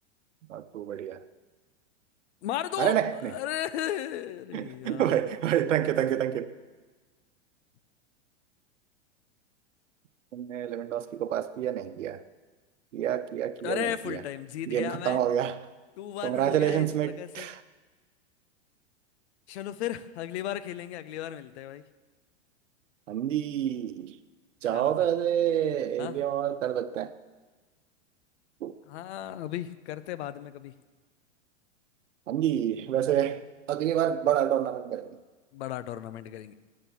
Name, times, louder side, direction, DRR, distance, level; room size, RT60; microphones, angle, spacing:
voice 1, 0.5-1.2 2.8-3.3 4.5-6.5 10.3-12.2 12.9-14.2 14.7-15.6 16.2-17.6 23.1-24.2 24.6-27.1 28.6-28.8 32.3-35.1, right 10 dB, 80° right, 12 dB, 1.0 m, -28 dB
voice 2, 2.4-2.9 3.3-5.2 13.6-15.2 16.0-17.5 19.5-21.8 24.7-24.9 26.0-26.1 28.9-30.7 35.5-36.5, left 12 dB, 60° left, 14 dB, 0.9 m, -35 dB
17.0 x 9.1 x 7.3 m, 1.4 s
hypercardioid pair, 115°, 37 cm